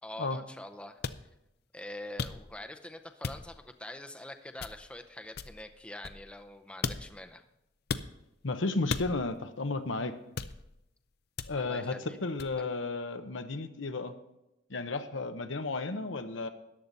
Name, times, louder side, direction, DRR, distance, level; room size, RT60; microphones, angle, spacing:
voice 1, 0.0-1.3 1.7-7.4 11.5-12.2 12.5-12.6, left 1 dB, 5° left, 6 dB, 0.6 m, -45 dB
sound 1, 1.0-1.2 2.2-2.7 3.2-3.7 4.6-5.0 5.4-6.5 6.8-7.3 7.9-8.1 8.9-9.4 10.4-10.8 11.4-11.8 12.4-12.6, left 5 dB, 55° left, 0.5 m, -37 dB
voice 2, 8.4-10.1 11.5-14.1 14.7-16.5, left 3 dB, 85° left, 8 dB, 1.0 m, -33 dB
13.5 x 10.5 x 4.1 m, 0.88 s
head